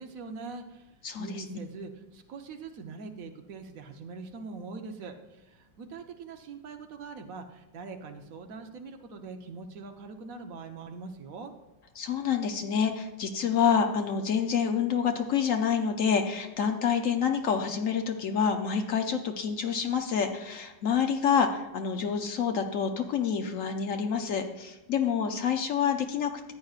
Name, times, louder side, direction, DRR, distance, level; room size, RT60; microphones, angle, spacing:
voice 1, 0.0-0.9 1.2-11.5, right 4 dB, 55° right, 5 dB, 1.0 m, -42 dB
voice 2, 1.0-1.6 12.0-26.5, left 7 dB, 70° left, 5 dB, 0.7 m, -27 dB
14.0 x 9.0 x 2.4 m, 1.1 s
omnidirectional pair, 2.1 m